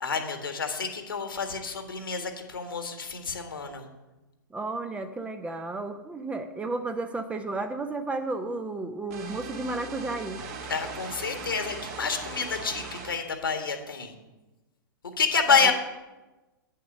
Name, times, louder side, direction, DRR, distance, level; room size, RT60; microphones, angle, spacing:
voice 1, 0.0-3.8 10.7-14.1 15.2-15.7, left 5 dB, 75° left, 6 dB, 1.6 m, -28 dB
voice 2, 4.5-10.4 15.5-15.7, right 2 dB, 10° right, 7 dB, 0.7 m, -33 dB
sound 1, 9.1-13.2, right 4 dB, 45° right, 1.6 m, -39 dB
9.0 x 6.6 x 6.5 m, 1.1 s
figure-of-eight pair, 110°, 12 cm